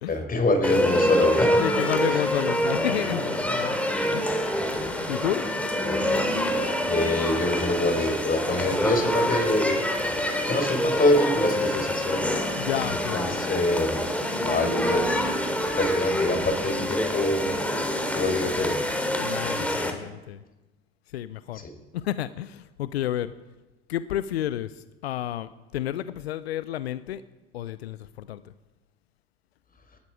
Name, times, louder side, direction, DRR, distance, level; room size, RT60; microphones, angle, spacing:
voice 1, 0.1-1.6 5.8-6.3 6.9-9.8 10.5-12.2 13.1-14.0 14.4-15.0 15.8-17.5 18.1-18.8 19.6-19.9, left 2 dB, 30° left, 5 dB, 4.7 m, -25 dB
sound 1, 0.6-19.9, equal, 5° left, 3.2 m, -26 dB
voice 2, 1.6-3.8 4.1-4.4 5.1-5.5 12.6-13.4 19.2-20.4 21.1-21.6 21.9-23.3 23.9-27.2 27.5-28.4, left 12 dB, 85° left, 15 dB, 0.6 m, -31 dB
18.5 x 13.0 x 5.0 m, 1.1 s
hypercardioid pair, 70°, 31 cm